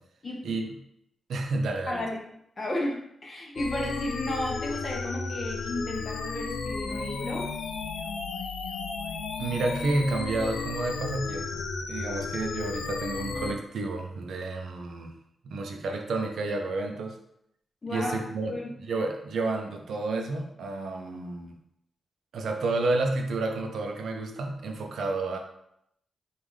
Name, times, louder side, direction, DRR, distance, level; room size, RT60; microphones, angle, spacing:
voice 1, 1.3-2.0 9.4-15.1 15.4-17.2 17.9-21.6 22.3-25.4, right 2 dB, 80° right, 3 dB, 0.6 m, -30 dB
voice 2, 1.9-2.2 2.6-7.5 17.8-18.2 18.5-18.7, left 1 dB, 30° left, -1 dB, 0.8 m, -33 dB
sound 1, 3.5-13.5, left 4 dB, 90° left, 0.5 m, -34 dB
5.4 x 2.5 x 3.2 m, 0.76 s
wide cardioid pair, 145°, 0 cm